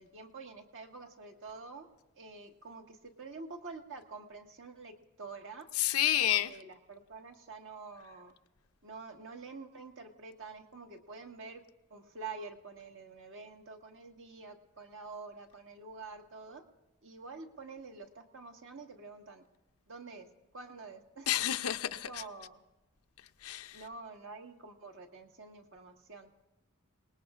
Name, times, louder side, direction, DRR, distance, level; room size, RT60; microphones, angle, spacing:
voice 1, 0.0-1.9 2.1-5.7 6.2-8.3 8.8-11.6 11.9-16.6 17.0-19.4 19.9-20.3 20.5-21.3 22.1-22.6 23.7-26.3, right 4 dB, 60° right, 1.6 m, -47 dB
voice 2, 5.8-6.5 21.3-22.2 23.4-23.8, left 12 dB, 85° left, 0.6 m, -30 dB
28.5 x 19.5 x 2.5 m
head